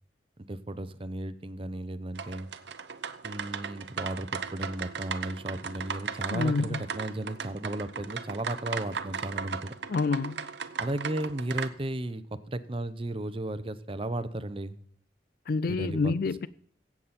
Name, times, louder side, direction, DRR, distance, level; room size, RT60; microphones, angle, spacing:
voice 1, 0.5-2.5 3.2-9.8 10.8-14.8 15.7-16.1, right 1 dB, 30° right, 0.7 m, -35 dB
sound 1, 2.2-11.7, right 6 dB, 70° right, 0.8 m, -37 dB
voice 2, 6.3-6.8 9.9-10.5 15.5-16.5, left 4 dB, 55° left, 0.4 m, -28 dB
16.5 x 7.3 x 4.2 m
head